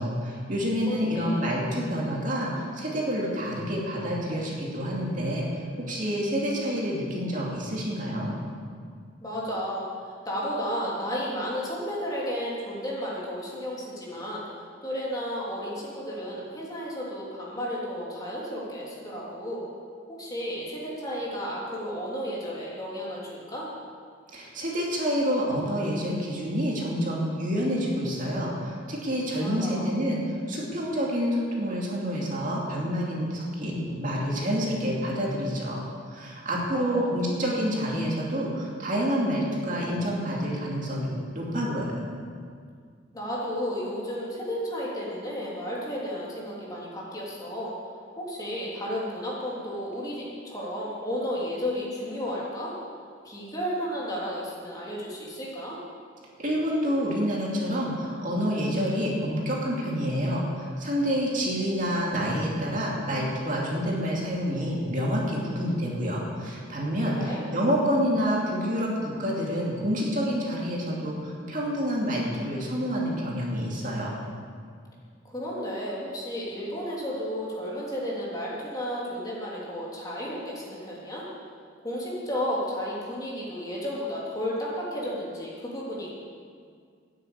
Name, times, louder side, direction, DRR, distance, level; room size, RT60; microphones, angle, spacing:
voice 1, 0.0-8.4 24.3-35.8 36.1-41.1 41.3-41.9 56.4-74.2, equal, 40° right, -3 dB, 2.7 m, -28 dB
voice 2, 0.9-1.5 9.2-19.6 20.1-23.7 29.4-29.9 36.7-37.1 43.1-47.7 48.2-52.7 53.2-55.8 67.1-67.5 75.2-81.3 81.8-86.1, equal, 20° left, -6 dB, 3.2 m, -33 dB
13.0 x 10.0 x 8.2 m, 2.1 s
head